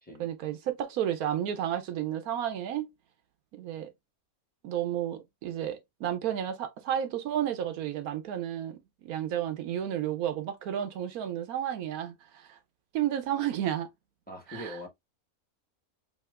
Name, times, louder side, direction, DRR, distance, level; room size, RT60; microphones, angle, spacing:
voice 1, 0.2-2.9 3.5-3.9 4.6-12.6 12.9-13.9 14.5-14.8, right 10 dB, 80° right, 1.1 m, -32 dB
voice 2, 14.3-14.9, equal, 5° left, 1.0 m, -42 dB
5.1 x 2.8 x 2.3 m
omnidirectional pair, 1.5 m